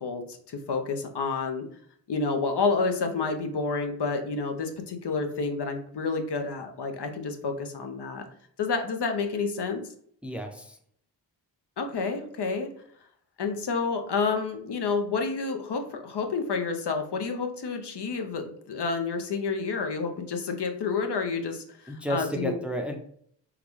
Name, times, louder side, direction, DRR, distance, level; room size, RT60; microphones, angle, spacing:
voice 1, 0.0-1.6 2.1-8.3 8.6-9.8 11.8-12.7 13.4-22.6, left 4 dB, 60° left, 5 dB, 0.7 m, -29 dB
voice 2, 10.2-10.8 21.9-23.0, equal, 5° right, 4 dB, 0.5 m, -32 dB
3.7 x 2.3 x 3.1 m, 0.62 s
cardioid pair, 45°, 46 cm